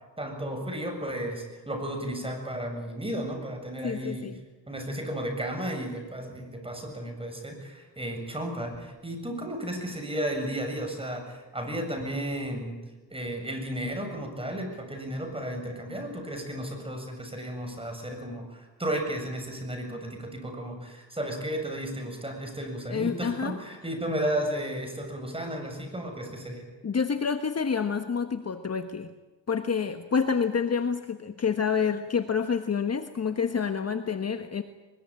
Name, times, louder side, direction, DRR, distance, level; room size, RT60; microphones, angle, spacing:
voice 1, 0.2-4.3 4.7-12.8 13.1-26.6, right 1 dB, 10° right, 4 dB, 7.6 m, -33 dB
voice 2, 3.8-4.4 22.9-23.6 26.8-29.1 29.5-34.6, left 6 dB, 35° left, 8 dB, 1.3 m, -28 dB
22.0 x 22.0 x 9.0 m, 1.2 s
cardioid pair, 100°, 44 cm